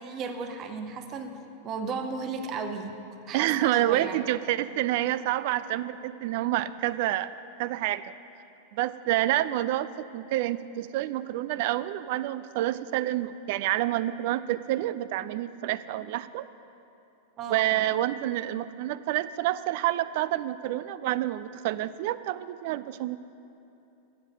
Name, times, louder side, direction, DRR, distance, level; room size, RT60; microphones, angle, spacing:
voice 1, 0.0-4.2 17.4-17.7, right 4 dB, 35° right, 7 dB, 0.9 m, -35 dB
voice 2, 3.3-7.3 7.6-8.0 8.7-16.5 17.5-23.2, right 14 dB, 50° right, 15 dB, 0.3 m, -28 dB
13.0 x 8.0 x 6.4 m, 2.8 s
figure-of-eight pair, 90°, 0 cm